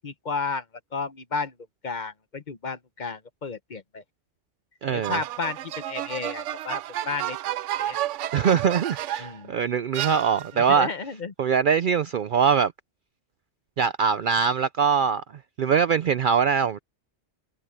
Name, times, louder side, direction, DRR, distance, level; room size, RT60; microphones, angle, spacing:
voice 1, 0.0-0.7 0.9-1.5 1.8-4.0 4.9-8.0 9.2-9.5 10.5-11.3, left 4 dB, 40° left, 1.1 m, -33 dB
voice 2, 4.8-5.2 8.3-10.9 11.4-12.7 13.8-15.2 15.6-16.8, right 6 dB, 60° right, 0.6 m, -22 dB
sound 1, 5.0-9.4 9.9-10.7, right 13 dB, 85° right, 0.9 m, -31 dB
omnidirectional pair, 1.2 m